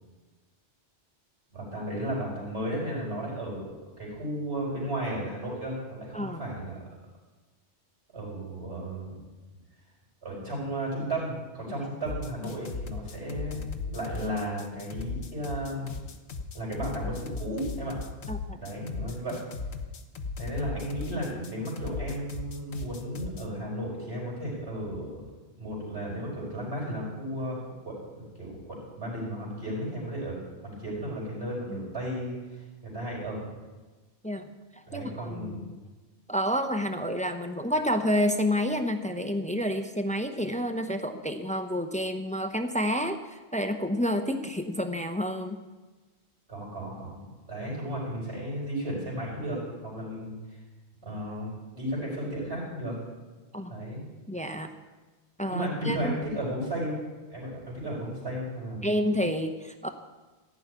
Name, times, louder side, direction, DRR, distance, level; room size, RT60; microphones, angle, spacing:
voice 1, 1.5-6.8 8.1-9.2 10.2-15.9 16.5-18.0 18.6-19.4 20.4-25.2 25.6-30.4 30.6-32.4 32.8-33.5 34.9-35.6 46.5-47.2 47.5-49.6 49.8-50.3 51.0-53.0 53.7-54.0 55.5-57.0 57.3-58.9, right 1 dB, 65° right, -5 dB, 5.2 m, -34 dB
sound 1, 12.0-23.5, left 4 dB, 70° left, 1.2 m, -37 dB
voice 2, 18.3-18.6 31.7-31.9 34.2-34.5 34.9-35.8 36.3-45.6 53.5-53.7 54.3-54.7 55.4-56.2 58.8-59.9, equal, 10° left, 7 dB, 0.6 m, -29 dB
14.5 x 6.3 x 9.4 m, 1.3 s
omnidirectional pair, 1.2 m